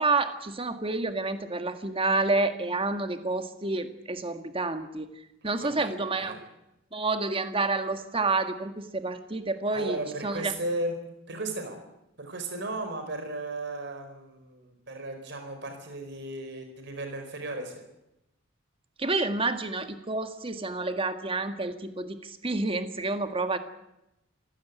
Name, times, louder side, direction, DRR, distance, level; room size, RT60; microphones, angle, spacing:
voice 1, 0.0-5.1 5.4-6.3 6.9-10.0 10.2-10.5 19.0-23.6, right 3 dB, 30° right, 8 dB, 1.7 m, -29 dB
voice 2, 5.4-6.4 9.7-11.0 11.3-11.8 12.2-17.8, right 2 dB, 60° right, 6 dB, 4.6 m, -35 dB
27.5 x 16.0 x 8.3 m, 0.90 s
head